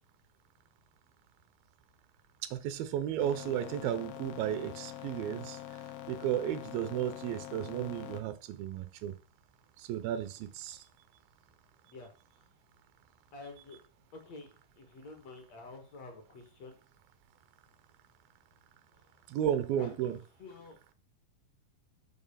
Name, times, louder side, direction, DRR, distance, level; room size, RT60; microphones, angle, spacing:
voice 1, 2.5-5.6 6.1-9.1 9.8-10.8 19.3-20.2, right 10 dB, 80° right, 11 dB, 2.5 m, -33 dB
sound 1, 3.2-8.2, left 13 dB, 85° left, 1.4 m, -45 dB
voice 2, 13.3-13.8 14.1-14.5 14.8-16.8 18.9-19.1 19.7-20.9, left 3 dB, 55° left, 3 dB, 2.3 m, -49 dB
7.0 x 5.7 x 5.6 m, 0.37 s
omnidirectional pair, 4.2 m